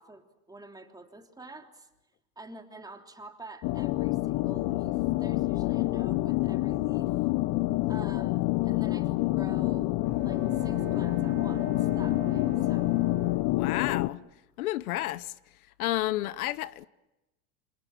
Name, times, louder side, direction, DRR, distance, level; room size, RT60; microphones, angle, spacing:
voice 1, 0.0-1.9 2.3-7.1 7.9-12.9, right 2 dB, 10° right, 3.2 m, -48 dB
sound 1, 3.6-14.1, left 19 dB, 50° left, 1.1 m, -27 dB
Bowed string instrument, 10.0-13.8, right 5 dB, 50° right, 3.0 m, -42 dB
voice 2, 13.4-14.2 14.6-15.3 15.8-16.9, left 15 dB, 80° left, 1.0 m, -31 dB
28.0 x 26.5 x 7.3 m
supercardioid pair, 110°, 43 cm